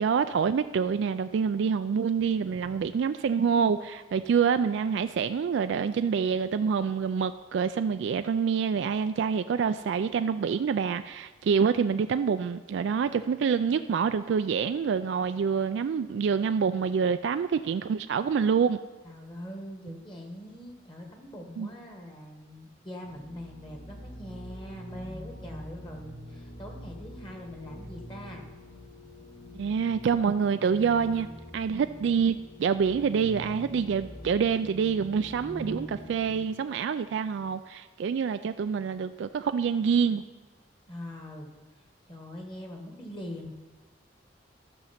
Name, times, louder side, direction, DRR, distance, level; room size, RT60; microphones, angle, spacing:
voice 1, 0.0-18.8 21.6-21.7 29.6-31.3 31.5-40.2, right 6 dB, 70° right, 10 dB, 0.3 m, -26 dB
voice 2, 2.2-2.9 19.0-28.5 40.9-41.5 42.1-43.5, equal, 25° left, 2 dB, 1.4 m, -43 dB
sound 1, 23.0-36.4, left 1 dB, 65° left, 2.6 m, -44 dB
14.0 x 6.3 x 5.7 m, 1.3 s
head